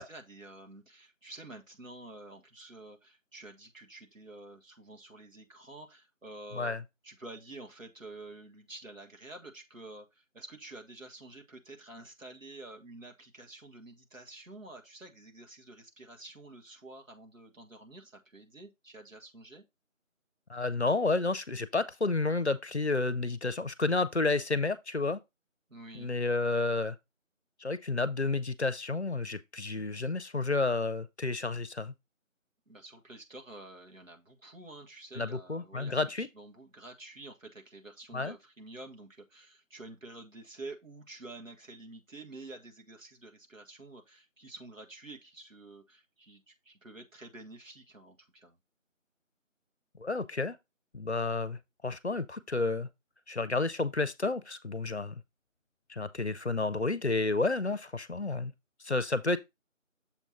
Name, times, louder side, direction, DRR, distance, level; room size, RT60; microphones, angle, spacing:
voice 1, 0.0-6.8 7.0-19.6 25.7-26.1 32.7-48.6, right 2 dB, 75° right, 1.8 m, -49 dB
voice 2, 20.5-25.2 25.9-27.0 27.6-31.9 35.2-36.3 38.1-38.4 50.0-50.6 50.9-51.6 51.8-52.9 53.3-55.2 55.9-58.5 58.8-59.4, left 3 dB, 55° left, 0.6 m, -30 dB
7.1 x 4.2 x 3.9 m
figure-of-eight pair, 175°, 40 cm